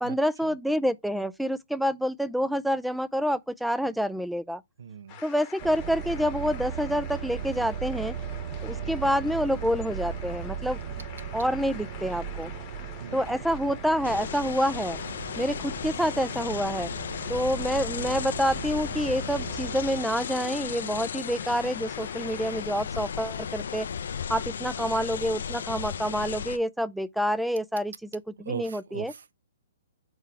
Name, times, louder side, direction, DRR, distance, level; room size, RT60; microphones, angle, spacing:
voice 1, 0.0-4.6 5.2-8.2 8.6-10.8 11.3-12.5 13.1-15.0 15.4-16.9 17.3-23.9 24.3-29.1, equal, ahead, 0.3 m, -28 dB
voice 2, 4.8-5.2 8.8-9.0 13.0-13.4 28.5-29.3, right 6 dB, 75° right, 0.9 m, -39 dB
sound 1, 5.1-22.6, left 9 dB, 30° left, 1.0 m, -48 dB
sound 2, 5.6-20.1, right 7 dB, 40° right, 0.8 m, -37 dB
sound 3, 14.0-26.6, left 7 dB, 70° left, 0.5 m, -35 dB
4.6 x 3.8 x 5.6 m
hypercardioid pair, 150°, 0 cm